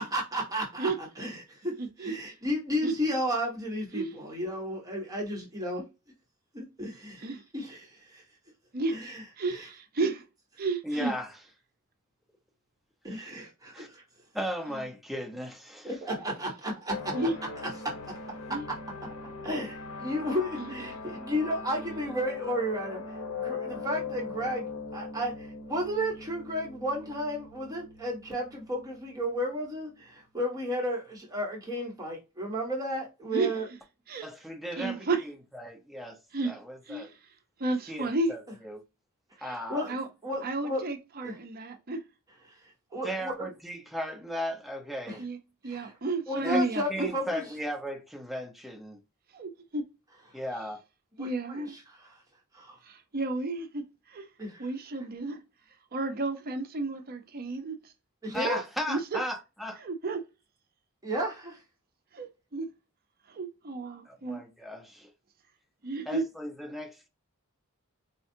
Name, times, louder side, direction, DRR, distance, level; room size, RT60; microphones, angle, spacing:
voice 1, 0.0-1.7 2.0-5.9 6.5-7.3 7.5-8.2 8.9-9.2 9.5-9.7 13.0-14.0 15.8-17.1 18.5-18.6 19.4-23.2 23.4-24.6 24.9-33.7 39.7-39.9 40.2-40.8 41.2-41.3 42.5-42.6 42.9-43.5 45.1-45.2 45.6-45.9 46.3-47.5 51.2-51.6 52.5-52.8 54.4-54.6 58.2-58.6 61.0-61.6, equal, 15° right, 1.1 m, -33 dB
voice 2, 1.8-2.2 2.8-2.9 3.9-4.2 7.2-7.4 8.7-9.0 9.4-10.2 10.6-11.1 14.7-14.8 17.1-17.4 18.5-18.6 20.6-20.9 21.7-22.0 33.3-33.5 34.1-34.3 34.8-35.2 36.3-36.5 36.9-37.1 37.6-38.3 39.4-39.6 39.9-40.1 40.4-42.0 45.2-45.4 45.6-47.1 49.3-49.8 51.2-51.8 52.8-54.3 54.6-55.4 55.9-57.8 58.9-59.2 59.8-60.2 62.1-62.7 63.3-64.4 65.8-66.2, right 3 dB, 45° right, 0.6 m, -32 dB
voice 3, 10.8-11.3 13.1-13.3 13.7-13.9 14.3-15.9 34.2-36.2 36.4-37.1 37.9-38.8 39.4-39.9 43.0-45.2 46.4-46.6 46.9-49.0 50.3-50.8 58.3-59.8 64.1-65.1 66.1-67.1, equal, ahead, 0.6 m, -36 dB
sound 1, 16.9-30.0, left 4 dB, 80° left, 0.8 m, -41 dB
4.3 x 2.2 x 2.7 m
head